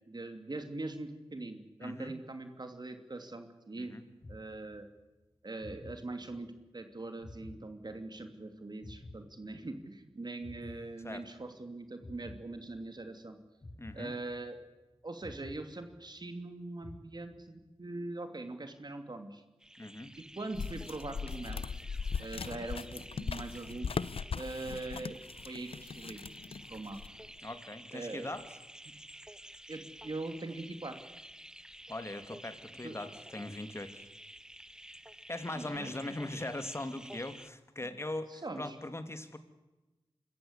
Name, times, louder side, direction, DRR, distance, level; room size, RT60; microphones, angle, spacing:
voice 1, 0.1-4.0 4.3-4.9 5.4-13.4 13.9-14.6 15.0-19.4 20.2-21.8 22.2-23.9 24.3-25.2 25.4-26.2 26.7-27.0 27.9-28.3 29.7-31.1 32.8-33.0 35.5-36.1 38.3-38.8, right 2 dB, 50° right, 7 dB, 2.8 m, -42 dB
voice 2, 1.8-2.1 3.8-4.0 11.0-11.3 13.8-14.1 19.8-20.1 27.4-28.4 31.9-34.1 35.3-39.4, left 2 dB, 30° left, 9 dB, 2.7 m, -40 dB
sound 1, 4.2-5.1 5.6-6.7 7.2-8.4 8.8-10.0 10.4-11.6 12.0-13.1 13.6-14.8 15.2-16.4 16.8-17.7, left 2 dB, 50° left, 7.5 m, -51 dB
sound 2, 19.6-37.5, right 1 dB, 5° right, 0.8 m, -51 dB
sound 3, 20.5-27.3, left 5 dB, 80° left, 0.7 m, -39 dB
26.0 x 14.5 x 8.3 m, 1.1 s
wide cardioid pair, 55°, 9 cm